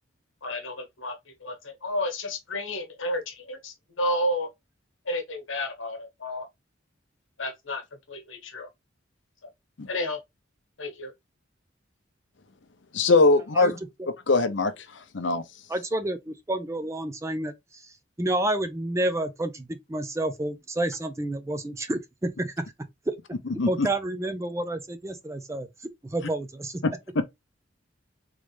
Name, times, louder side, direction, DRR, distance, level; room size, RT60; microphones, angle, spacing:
voice 1, 0.4-4.5 5.1-6.5 7.4-7.8 8.1-8.7 9.9-10.2 10.8-11.1, left 1 dB, 85° left, 1.3 m, -31 dB
voice 2, 12.9-13.7 14.3-14.7 15.1-15.4 23.6-23.9, left 3 dB, 65° left, 0.7 m, -21 dB
voice 3, 15.7-17.5 18.2-22.6 23.1-23.2 23.7-25.7 26.1-26.8, right 1 dB, 15° right, 0.4 m, -29 dB
3.7 x 3.3 x 3.2 m
head